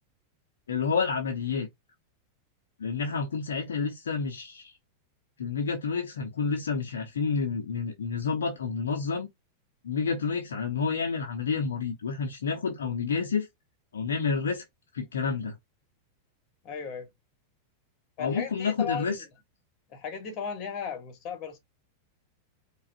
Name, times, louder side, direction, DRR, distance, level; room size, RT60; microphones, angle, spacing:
voice 1, 0.7-1.7 2.8-4.8 5.4-9.3 9.8-13.5 13.9-14.6 14.9-15.6 18.2-19.2, left 5 dB, 65° left, 0.7 m, -29 dB
voice 2, 16.6-17.1 18.2-19.3 19.9-21.6, left 6 dB, 35° left, 1.4 m, -36 dB
4.8 x 2.4 x 2.5 m
figure-of-eight pair, 90°, 0 cm